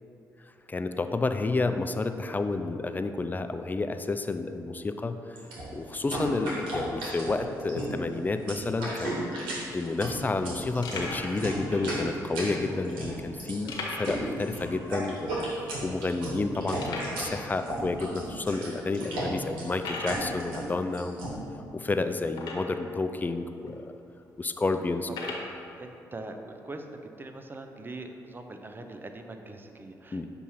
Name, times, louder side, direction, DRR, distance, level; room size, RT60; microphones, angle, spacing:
voice 1, 0.7-5.4 5.7-9.2 9.7-21.4 21.7-24.0 24.4-25.1 30.1-30.3, left 3 dB, 20° left, 8 dB, 0.4 m, -30 dB
sound 1, 5.4-21.3, right 1 dB, 85° right, 1.4 m, -34 dB
sound 2, 10.8-11.3 12.1-12.2 13.7-14.3 14.5-14.6 15.1-15.2 15.8-15.9 16.8-17.2 18.0-18.1 18.7-18.8 19.8-20.2 22.3-22.9 23.7-23.8 25.1-25.5, left 3 dB, 70° left, 1.0 m, -37 dB
voice 2, 25.8-26.8 27.2-30.2, right 2 dB, 25° right, 5 dB, 0.6 m, -42 dB
6.1 x 2.8 x 5.5 m, 2.8 s
supercardioid pair, 55°, 8 cm